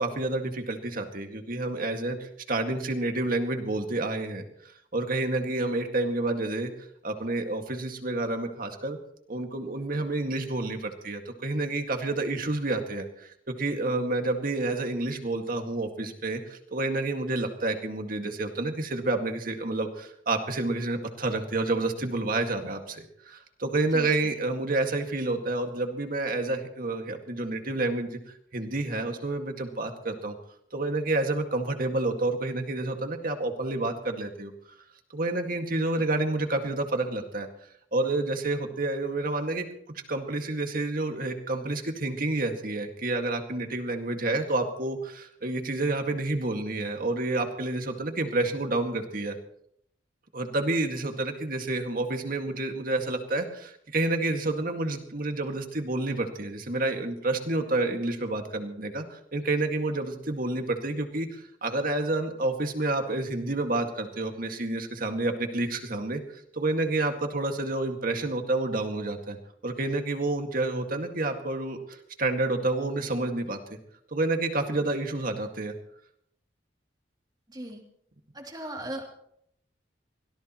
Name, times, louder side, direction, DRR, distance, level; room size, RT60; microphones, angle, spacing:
voice 1, 0.0-6.7 7.0-9.0 9.3-30.4 30.7-34.5 35.1-37.5 37.9-39.7 40.1-49.4 50.3-69.4 69.6-73.8 74.1-75.7, right 2 dB, 50° right, 5 dB, 2.0 m, -29 dB
voice 2, 77.5-77.8 78.3-79.0, right 1 dB, 20° right, 1 dB, 2.9 m, -37 dB
24.0 x 17.5 x 3.1 m, 0.71 s
head